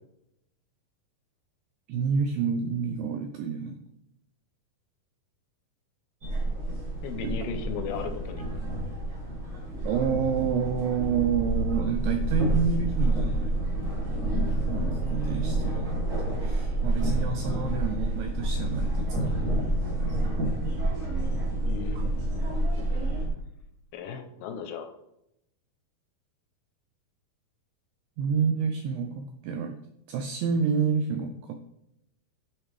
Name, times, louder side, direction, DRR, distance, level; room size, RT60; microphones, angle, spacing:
voice 1, 1.9-3.8 7.2-7.3 9.8-13.8 14.5-16.0 16.4-19.7 21.9-22.1 28.2-29.8 30.1-31.7, right 6 dB, 85° right, 6 dB, 2.0 m, -29 dB
sound 1, 6.2-23.3, right 1 dB, 55° right, 1.0 m, -28 dB
voice 2, 7.0-8.4 21.7-22.3 23.9-24.9, left 6 dB, 85° left, 7 dB, 2.5 m, -36 dB
9.1 x 4.6 x 3.2 m, 0.81 s
omnidirectional pair, 4.5 m